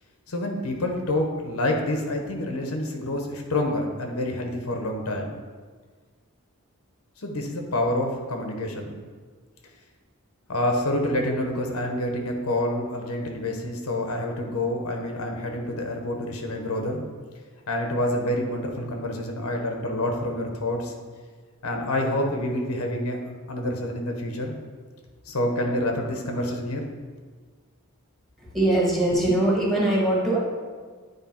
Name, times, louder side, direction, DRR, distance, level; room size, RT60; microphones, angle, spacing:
voice 1, 0.3-5.4 7.2-9.0 10.5-17.0 17.7-20.9 21.6-23.2 23.5-24.5 25.3-26.8, left 1 dB, 80° left, 2 dB, 0.9 m, -27 dB
voice 2, 28.4-30.4, right 1 dB, ahead, -3 dB, 1.4 m, -22 dB
9.2 x 3.3 x 4.3 m, 1.5 s
head